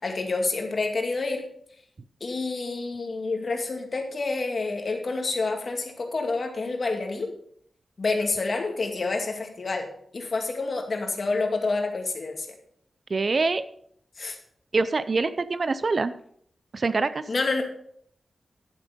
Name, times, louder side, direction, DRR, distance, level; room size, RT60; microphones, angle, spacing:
voice 1, 0.0-1.5 2.2-7.3 8.0-9.9 10.1-12.5 14.2-14.4 17.3-17.6, left 3 dB, 45° left, 3 dB, 2.3 m, -28 dB
voice 2, 13.1-13.6 14.7-16.1 16.7-17.3, right 3 dB, 45° right, 14 dB, 0.5 m, -25 dB
11.0 x 8.8 x 5.2 m, 0.67 s
wide cardioid pair, 125°, 0 cm